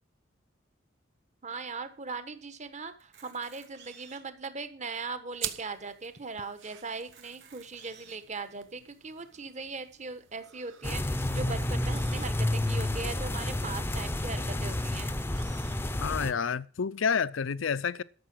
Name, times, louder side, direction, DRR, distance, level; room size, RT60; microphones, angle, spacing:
voice 1, 1.4-15.3, right 4 dB, 35° right, 1.3 m, -39 dB
Camera, 3.0-4.4 5.0-5.1 5.4-5.5 6.0-6.1 6.9-8.3 8.9-9.0 11.1-12.3 13.0-13.1 13.4-13.5 14.6-15.8, right 7 dB, 60° right, 3.0 m, -54 dB
sound 1, 5.3-14.3, right 11 dB, 80° right, 1.1 m, -46 dB
sound 2, 10.8-16.3, left 1 dB, 10° left, 0.6 m, -30 dB
voice 2, 16.0-18.0, left 6 dB, 80° left, 0.5 m, -29 dB
13.0 x 6.8 x 6.1 m
head